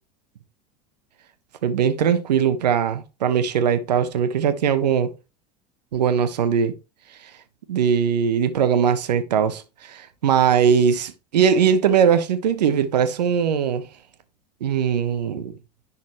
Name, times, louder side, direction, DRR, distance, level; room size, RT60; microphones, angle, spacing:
voice 1, 1.6-5.1 5.9-6.7 7.7-13.9 14.6-15.5, right 7 dB, 75° right, 1.2 m, -20 dB
10.5 x 4.2 x 3.2 m
hypercardioid pair, 85°, 21 cm